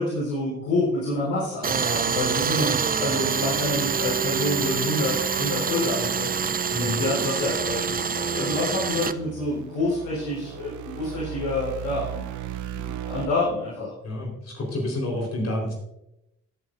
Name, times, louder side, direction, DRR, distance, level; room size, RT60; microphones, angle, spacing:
voice 1, 0.0-12.2 12.7-13.9, left 2 dB, 90° left, -8 dB, 3.9 m, -28 dB
Tools, 1.6-9.1, right 6 dB, 30° right, 0.5 m, -26 dB
voice 2, 6.7-7.0 14.0-15.7, left 1 dB, 60° left, 0 dB, 4.1 m, -29 dB
sound 1, 7.6-13.3, right 11 dB, 80° right, 0.8 m, -37 dB
17.5 x 8.1 x 2.6 m, 0.86 s
supercardioid pair, 55°, 29 cm